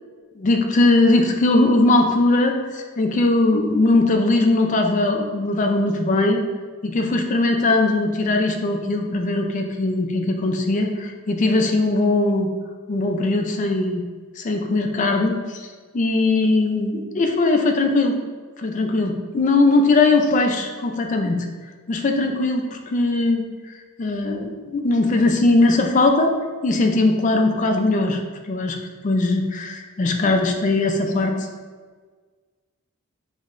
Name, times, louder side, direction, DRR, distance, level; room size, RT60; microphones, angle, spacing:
voice 1, 0.4-6.4 6.8-12.5 12.9-14.0 14.4-15.7 15.9-18.2 18.6-21.5 21.9-23.4 24.0-26.3 26.6-28.2 28.5-28.8 29.0-31.5, left 2 dB, 35° left, 4 dB, 0.3 m, -20 dB
5.3 x 2.1 x 2.4 m, 1.5 s
head